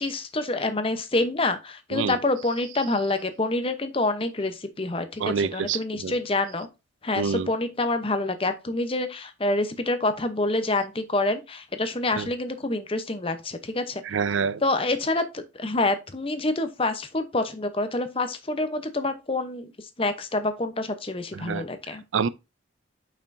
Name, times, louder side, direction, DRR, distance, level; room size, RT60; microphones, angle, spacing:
voice 1, 0.0-6.7 7.0-14.0 14.6-22.0, left 2 dB, 30° left, 0.8 m, -27 dB
voice 2, 5.2-6.1 7.2-7.5 12.2-12.3 14.1-14.6 21.3-21.7 22.1-22.3, right 6 dB, 80° right, 0.4 m, -27 dB
6.7 x 5.8 x 2.6 m
head